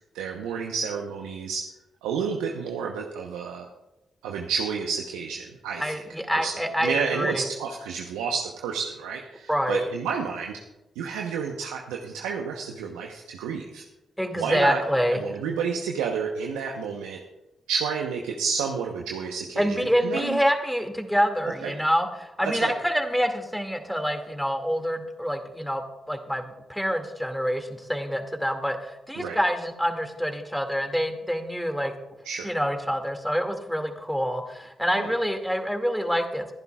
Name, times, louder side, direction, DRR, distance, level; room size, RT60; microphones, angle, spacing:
voice 1, 0.1-1.7 2.0-3.7 4.2-6.0 6.3-6.5 6.8-10.6 11.0-13.8 14.4-14.8 15.1-17.2 17.7-20.4 21.6-21.7 22.4-22.7 29.2-29.4 32.2-32.5 35.0-35.1, right 6 dB, 85° right, 1 dB, 0.9 m, -30 dB
voice 2, 5.8-7.5 9.5-9.9 14.2-15.2 19.6-31.9 32.4-36.5, equal, ahead, 5 dB, 2.3 m, -26 dB
22.5 x 10.5 x 2.4 m, 0.95 s
hypercardioid pair, 40°, 0 cm